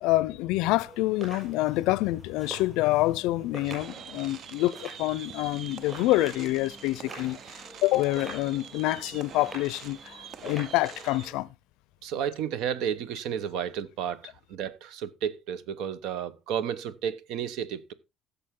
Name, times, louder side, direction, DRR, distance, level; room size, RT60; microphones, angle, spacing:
voice 1, 0.0-10.2 10.4-11.5, left 18 dB, 85° left, 0.5 m, -27 dB
sound 1, 0.7-11.4, right 1 dB, 10° right, 6.6 m, -46 dB
sound 2, 3.6-11.3, right 8 dB, 40° right, 0.5 m, -45 dB
voice 2, 12.0-17.9, right 8 dB, 70° right, 1.0 m, -32 dB
16.0 x 7.0 x 3.7 m
cardioid pair, 175°, 0 cm